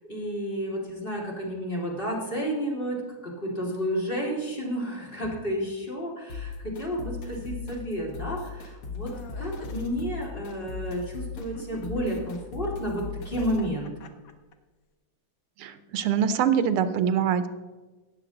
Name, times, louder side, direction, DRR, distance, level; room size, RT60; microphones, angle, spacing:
voice 1, 0.1-3.0 3.2-13.9, equal, 25° left, -3 dB, 2.3 m, -31 dB
sound 1, 6.3-13.7, left 5 dB, 85° left, 2.5 m, -38 dB
sound 2, 9.1-9.8 11.4-12.3 13.2-14.5, left 4 dB, 60° left, 0.9 m, -46 dB
voice 2, 15.6-17.5, right 8 dB, 85° right, 12 dB, 1.6 m, -24 dB
18.0 x 6.8 x 3.9 m, 1.2 s
omnidirectional pair, 2.4 m